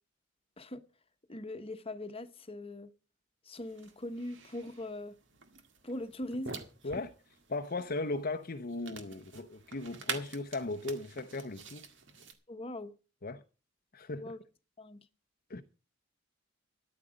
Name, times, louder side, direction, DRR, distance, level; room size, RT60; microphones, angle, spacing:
voice 1, 1.3-2.9 3.4-5.1 5.8-6.5 12.5-12.9 14.1-14.4 14.8-15.0, left 1 dB, 30° left, 1.2 m, -41 dB
sound 1, 3.6-12.3, right 5 dB, 65° right, 2.0 m, -47 dB
voice 2, 7.5-11.9 13.2-13.4 13.9-14.3 15.5-15.6, left 2 dB, 50° left, 0.8 m, -37 dB
13.5 x 9.9 x 5.1 m
head